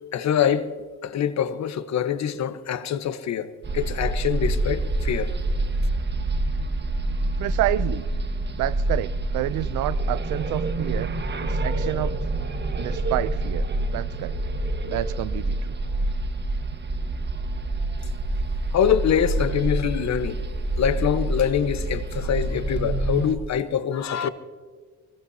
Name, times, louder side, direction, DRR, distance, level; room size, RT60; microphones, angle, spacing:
voice 1, 0.1-0.7 1.0-5.3 18.7-20.4 20.7-24.3, left 8 dB, 65° left, 1.2 m, -24 dB
sound 1, 3.6-23.4, right 2 dB, 35° right, 1.5 m, -27 dB
voice 2, 7.4-8.1 8.6-11.1 11.4-12.2 12.8-14.4 14.8-15.8, right 15 dB, 85° right, 0.5 m, -29 dB
24.5 x 21.0 x 2.8 m
cardioid pair, 90°, 30 cm